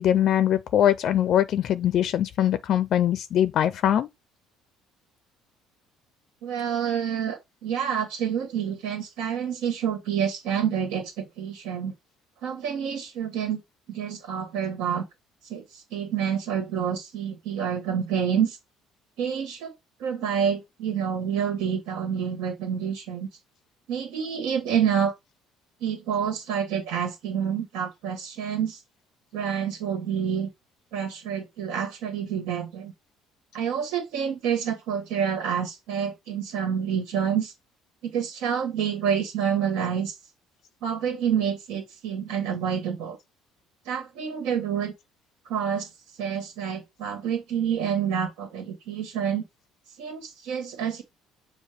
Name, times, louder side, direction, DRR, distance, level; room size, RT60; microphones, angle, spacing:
voice 1, 0.0-4.1, left 10 dB, 45° left, 0.4 m, -22 dB
voice 2, 6.4-11.9 12.4-13.6 13.9-15.0 15.4-18.6 19.2-19.7 20.0-23.3 23.9-25.1 25.8-28.8 29.3-30.5 30.9-32.9 33.5-37.5 38.0-40.2 40.8-43.2 43.9-44.9 45.5-45.9 46.2-49.4 50.0-51.0, right 8 dB, 85° right, 1.8 m, -28 dB
7.4 x 2.6 x 5.0 m
cardioid pair, 155°, 0 cm